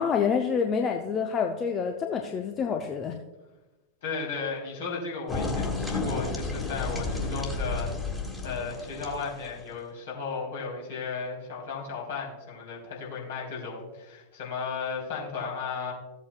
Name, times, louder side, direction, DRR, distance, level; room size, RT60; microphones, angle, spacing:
voice 1, 0.0-3.2, left 6 dB, 25° left, 3 dB, 0.7 m, -27 dB
voice 2, 4.0-8.1 8.4-15.9, left 5 dB, 60° left, -3 dB, 3.5 m, -35 dB
sound 1, 5.3-9.6, left 3 dB, 10° left, 1.9 m, -31 dB
15.5 x 8.2 x 2.3 m, 1.1 s
figure-of-eight pair, 90°, 0 cm